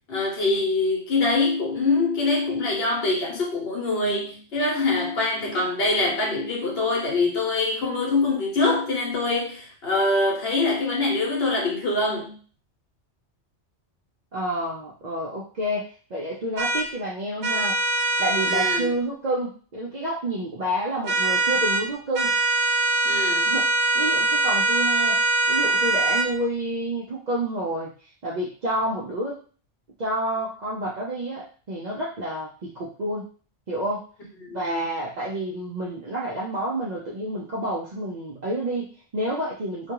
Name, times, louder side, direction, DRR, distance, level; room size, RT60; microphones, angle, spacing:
voice 1, 0.1-12.4 18.5-18.9 23.0-23.5 34.4-34.8, left 3 dB, 60° left, -1 dB, 1.0 m, -24 dB
voice 2, 14.3-17.8 18.2-22.3 23.5-29.4 30.0-33.2 33.7-34.1 34.5-39.9, right 1 dB, 55° right, -5 dB, 0.5 m, -29 dB
sound 1, 16.6-16.9 17.4-18.8 21.0-21.8 22.1-26.3, right 2 dB, 70° right, 0.8 m, -22 dB
2.3 x 2.2 x 2.9 m, 0.39 s
omnidirectional pair, 1.2 m